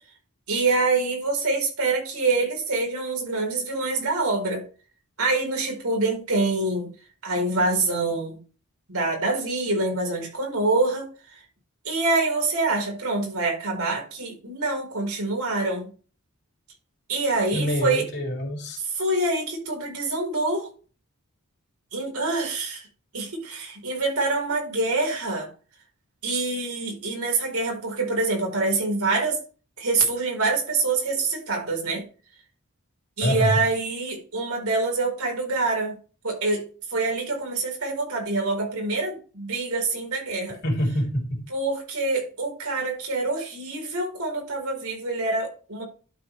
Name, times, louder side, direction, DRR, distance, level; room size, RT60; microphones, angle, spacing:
voice 1, 0.5-4.6 5.2-6.9 7.2-8.4 8.9-11.1 11.8-15.9 17.1-18.1 18.8-20.7 21.9-22.8 23.1-25.5 26.2-29.4 29.8-32.0 33.2-36.0 36.2-40.6 41.5-45.8, right 3 dB, 85° right, 4.5 m, -25 dB
voice 2, 17.5-18.8 33.2-33.6 40.6-41.4, equal, 50° left, 3.5 m, -25 dB
12.0 x 5.1 x 3.3 m
head